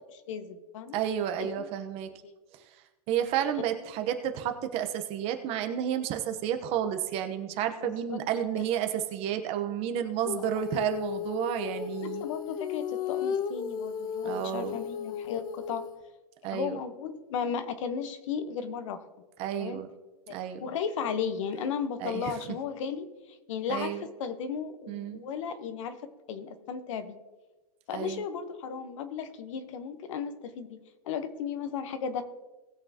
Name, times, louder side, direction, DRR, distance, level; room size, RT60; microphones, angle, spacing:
voice 1, 0.0-1.0 1.4-1.7 2.2-2.3 7.8-8.2 8.5-8.6 12.0-15.9 16.5-19.0 19.6-19.8 20.3-23.1 23.5-27.2 27.9-30.8 31.0-32.2, left 6 dB, 50° left, 10 dB, 1.1 m, -35 dB
voice 2, 0.9-2.1 3.1-12.2 14.2-14.8 16.4-16.8 19.4-19.9 20.3-20.6 22.0-22.3 23.7-24.0 24.9-25.3 27.9-28.2, right 10 dB, 30° right, 7 dB, 1.0 m, -31 dB
Female singing, 10.3-16.0, left 7 dB, 20° left, 0.4 m, -35 dB
19.0 x 6.8 x 2.9 m, 1.2 s
hypercardioid pair, 135°, 20 cm